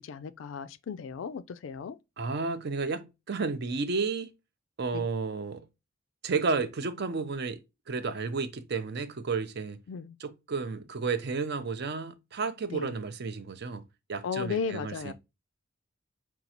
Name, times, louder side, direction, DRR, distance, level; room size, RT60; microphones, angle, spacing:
voice 1, 0.0-2.0 4.9-5.1 9.9-10.2 12.7-12.9 14.2-15.1, left 6 dB, 70° left, 0.3 m, -35 dB
voice 2, 2.2-4.3 4.8-5.6 6.2-7.6 7.9-9.8 10.2-13.8 14.1-15.1, right 4 dB, 55° right, 0.5 m, -32 dB
5.2 x 2.3 x 2.8 m
head